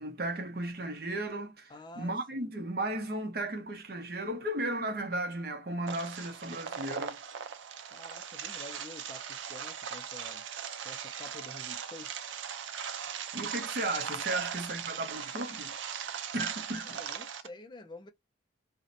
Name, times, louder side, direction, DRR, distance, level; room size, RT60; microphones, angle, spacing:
voice 1, 0.0-7.2 13.3-15.8 16.3-17.0, right 1 dB, 55° right, 0.7 m, -35 dB
voice 2, 1.7-2.5 7.9-10.4 10.8-12.2 16.8-18.1, left 2 dB, 25° left, 0.3 m, -49 dB
sound 1, 5.9-17.5, right 8 dB, 85° right, 0.5 m, -39 dB
2.6 x 2.1 x 2.5 m
head